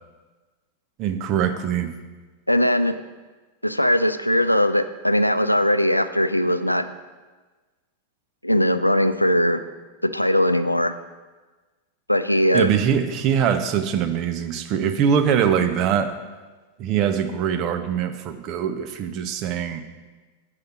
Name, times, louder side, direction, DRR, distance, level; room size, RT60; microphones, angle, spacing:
voice 1, 1.0-1.9 12.5-16.2 16.8-19.8, right 8 dB, 40° right, 7 dB, 0.7 m, -22 dB
voice 2, 2.5-3.0 3.6-6.9 8.4-9.6 10.0-11.0 12.1-12.7, left 1 dB, 90° left, 11 dB, 0.4 m, -20 dB
7.9 x 4.9 x 7.0 m, 1.3 s
figure-of-eight pair, 90°, 0 cm